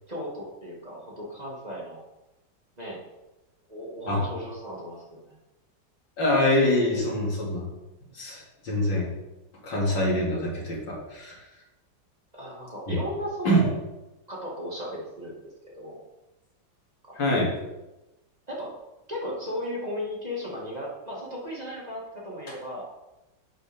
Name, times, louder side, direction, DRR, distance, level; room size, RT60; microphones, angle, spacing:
voice 1, 0.1-2.0 2.8-3.0 3.7-5.4 9.9-10.0 12.3-13.7 14.3-16.0 17.1-17.2 18.5-18.7 19.1-22.8, equal, 20° right, -4 dB, 2.0 m, -36 dB
voice 2, 6.2-7.7 8.1-9.1 9.6-11.4 12.9-13.0 13.5-13.6 17.2-17.5, left 1 dB, 85° left, -4 dB, 3.5 m, -24 dB
10.5 x 8.0 x 3.6 m, 1.0 s
omnidirectional pair, 2.0 m